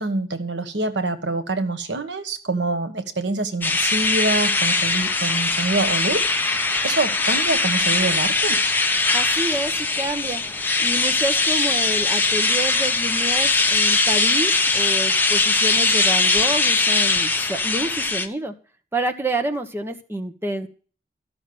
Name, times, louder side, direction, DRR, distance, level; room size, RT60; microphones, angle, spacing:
voice 1, 0.0-8.6, right 2 dB, 80° right, 1.4 m, -26 dB
sound 1, 3.6-18.3, left 3 dB, 10° left, 0.8 m, -21 dB
voice 2, 9.1-10.4 10.8-18.5 18.9-20.7, right 1 dB, 15° right, 1.1 m, -28 dB
13.5 x 6.0 x 7.8 m
head